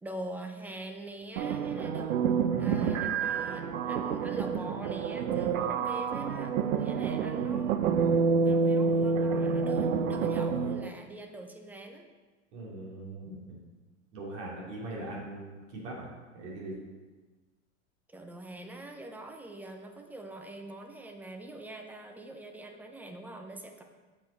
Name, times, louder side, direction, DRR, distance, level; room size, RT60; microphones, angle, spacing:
voice 1, 0.0-2.2 2.6-12.1 18.1-23.8, right 1 dB, 5° right, 4 dB, 0.3 m, -44 dB
sound 1, 1.4-10.9, right 5 dB, 80° right, 0.7 m, -28 dB
voice 2, 12.5-13.4 14.1-16.1 16.3-16.8, right 2 dB, 60° right, -3 dB, 2.5 m, -40 dB
7.8 x 6.0 x 4.3 m, 1.3 s
hypercardioid pair, 125°, 39 cm